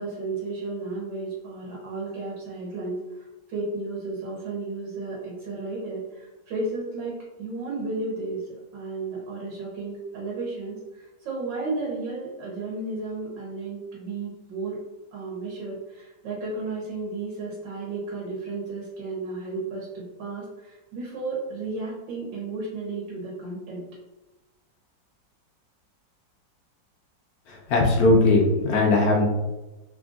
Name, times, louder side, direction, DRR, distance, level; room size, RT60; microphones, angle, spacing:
voice 1, 0.0-8.4 8.7-14.8 15.1-23.8, right 3 dB, 85° right, -4 dB, 1.5 m, -33 dB
voice 2, 27.7-29.3, left 2 dB, 70° left, 0 dB, 0.9 m, -19 dB
3.3 x 2.4 x 2.4 m, 1.1 s
omnidirectional pair, 2.0 m